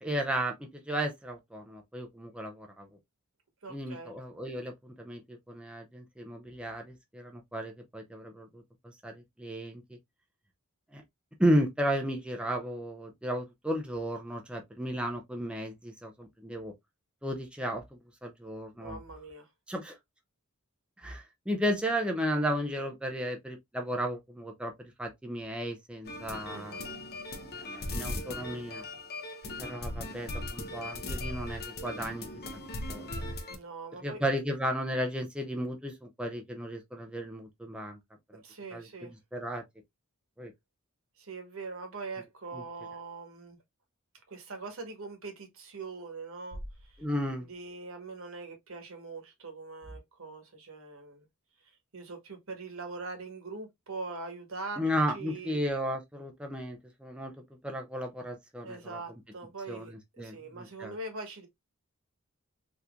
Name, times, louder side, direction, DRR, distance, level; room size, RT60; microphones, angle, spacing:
voice 1, 0.0-2.9 3.7-8.6 9.0-9.8 10.9-11.0 11.4-16.7 17.2-17.8 18.2-19.0 19.7-20.0 21.0-26.8 27.6-28.8 29.6-32.3 32.9-33.3 34.0-38.0 38.7-38.8 39.3-39.6 40.4-40.5 42.5-42.6 47.0-47.5 54.8-57.3 57.6-59.0 59.7-59.8 60.2-60.9, equal, 5° right, 0.5 m, -34 dB
voice 2, 3.6-4.1 18.8-19.5 26.5-27.0 33.5-34.2 38.3-39.1 41.2-43.6 44.3-47.0 47.4-51.3 51.9-55.6 58.6-61.5, right 3 dB, 65° right, 1.2 m, -42 dB
sound 1, 26.1-33.6, left 2 dB, 45° left, 0.7 m, -38 dB
sound 2, 46.5-48.6, equal, 40° right, 0.8 m, -48 dB
3.6 x 2.9 x 2.3 m
head